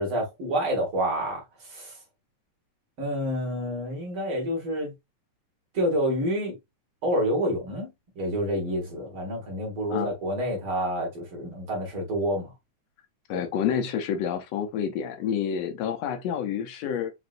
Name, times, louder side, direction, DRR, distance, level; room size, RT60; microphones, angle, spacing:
voice 1, 0.0-1.4 1.7-2.0 3.0-4.9 5.7-6.6 7.0-12.5 13.3-13.4, equal, 50° right, 2.4 m, -28 dB
voice 2, 13.3-17.1, left 8 dB, 75° left, 1.5 m, -28 dB
5.2 x 3.0 x 2.5 m
omnidirectional pair, 3.5 m